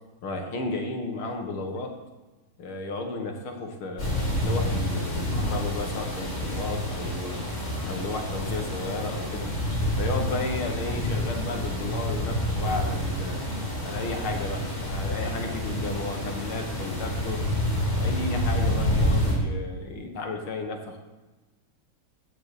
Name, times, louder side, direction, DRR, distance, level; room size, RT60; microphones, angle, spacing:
voice 1, 0.2-2.0 2.6-7.4 7.9-9.5 10.0-13.4 13.8-17.5 17.9-21.0, left 2 dB, 80° left, 3 dB, 2.4 m, -33 dB
sound 1, 4.0-19.3, left 1 dB, 30° left, 4.2 m, -28 dB
16.0 x 5.9 x 7.0 m, 1.2 s
omnidirectional pair, 2.3 m